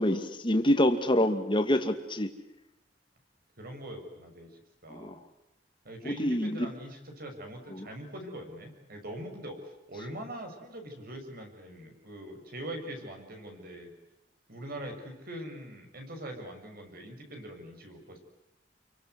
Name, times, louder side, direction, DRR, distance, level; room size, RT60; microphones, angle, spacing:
voice 1, 0.0-2.3 4.9-5.2 6.1-6.7 7.7-7.9, left 1 dB, 30° left, 7 dB, 2.3 m, -26 dB
voice 2, 3.6-4.5 4.8-5.2 5.8-9.6 9.9-13.9 14.5-18.2, right 1 dB, 55° right, 4 dB, 6.9 m, -42 dB
28.5 x 24.0 x 8.1 m, 0.91 s
head